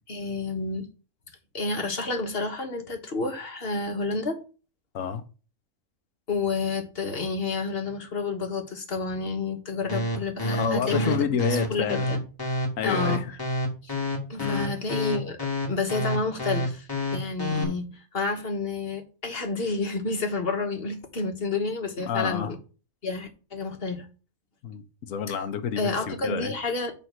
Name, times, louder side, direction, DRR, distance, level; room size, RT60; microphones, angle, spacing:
voice 1, 0.1-0.9 1.5-4.4 6.3-12.2 12.8-13.2 13.8-13.9 14.3-15.4 15.7-22.6 23.0-24.1 25.3-25.4 25.8-26.9, left 3 dB, 45° left, 1.5 m, -30 dB
sound 1, 9.9-17.6, left 1 dB, 15° left, 1.8 m, -28 dB
voice 2, 10.5-12.1 12.8-13.2 14.4-14.7 17.5-17.7 22.1-22.5 24.6-26.5, left 7 dB, 70° left, 1.2 m, -29 dB
7.8 x 4.1 x 5.7 m
omnidirectional pair, 1.5 m